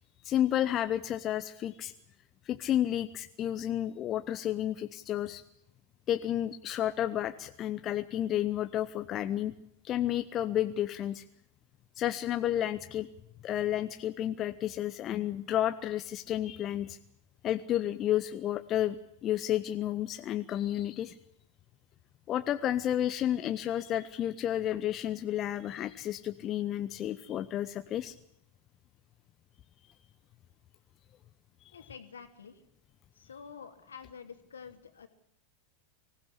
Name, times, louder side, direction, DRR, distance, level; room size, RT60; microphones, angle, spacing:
voice 1, 0.2-1.9 2.4-5.4 6.1-9.5 9.8-11.2 12.0-13.1 13.4-17.0 17.4-19.0 19.2-21.1 22.3-28.1 31.6-31.9, left 12 dB, 30° left, 10 dB, 0.8 m, -31 dB
voice 2, 31.7-32.6 33.2-35.1, left 6 dB, 70° left, 7 dB, 2.7 m, -48 dB
24.5 x 16.5 x 8.4 m, 0.77 s
figure-of-eight pair, 90°, 0 cm